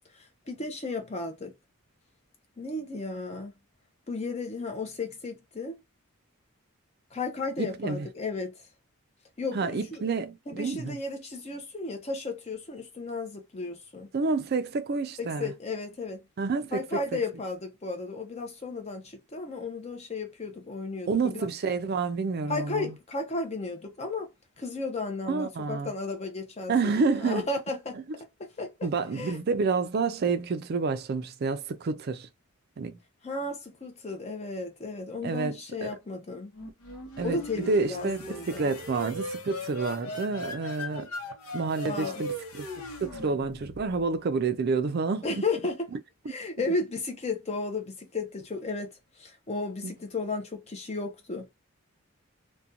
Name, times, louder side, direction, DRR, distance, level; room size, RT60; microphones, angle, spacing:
voice 1, 0.1-1.5 2.6-3.5 4.1-5.8 7.1-8.6 9.4-10.0 10.5-14.1 15.2-16.2 16.7-21.5 22.5-24.3 24.6-28.0 28.4-28.9 29.1-29.4 33.2-36.5 37.2-38.7 41.8-42.2 45.2-45.9 46.3-48.9 49.2-51.5, left 3 dB, 30° left, 0.6 m, -34 dB
voice 2, 7.6-8.1 9.5-11.0 14.1-15.5 16.4-17.0 21.1-22.9 25.3-25.9 26.7-27.4 28.8-32.3 32.8-33.0 35.2-35.6 35.8-35.9 37.2-41.1 41.5-42.7 43.0-45.3 49.8-49.9, right 4 dB, 45° right, 0.4 m, -29 dB
sound 1, 36.5-44.2, left 1 dB, 90° left, 0.7 m, -38 dB
2.4 x 2.2 x 2.7 m
head